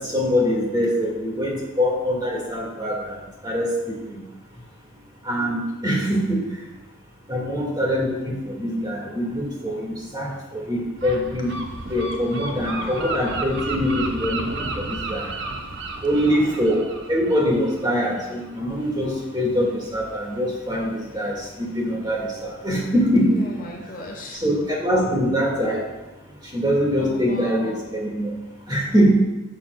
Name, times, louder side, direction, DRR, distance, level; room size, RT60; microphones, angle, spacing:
voice 1, 0.0-3.2 3.4-3.7 5.3-6.4 7.3-11.5 11.9-15.3 16.0-16.8 17.1-23.3 24.4-25.8 26.5-28.3 28.7-29.1, equal, 20° right, -3 dB, 2.0 m, -23 dB
Gull seagull, 11.0-18.5, right 3 dB, 60° right, 0.8 m, -32 dB
voice 2, 12.4-13.1 14.9-16.6 18.7-18.8 20.2-20.4 20.9-21.6 23.3-24.4 27.0-27.8, left 1 dB, 40° left, 0 dB, 1.1 m, -39 dB
11.5 x 7.1 x 2.3 m, 1.1 s
head